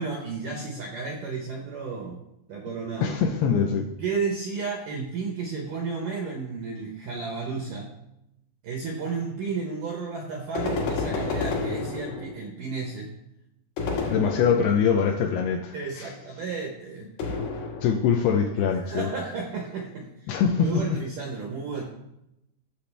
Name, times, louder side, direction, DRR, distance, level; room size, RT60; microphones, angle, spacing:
voice 1, 0.0-2.2 2.5-3.2 4.0-7.9 8.6-13.1 15.7-17.1 18.9-21.8, right 4 dB, 75° right, 0 dB, 2.0 m, -32 dB
voice 2, 3.0-3.8 14.0-16.1 17.8-19.1 20.3-20.8, left 7 dB, 80° left, 3 dB, 2.4 m, -23 dB
sound 1, 10.5-12.5 13.8-15.0 17.2-18.2, left 4 dB, 60° left, 3.1 m, -30 dB
14.5 x 7.0 x 3.4 m, 0.84 s
omnidirectional pair, 5.3 m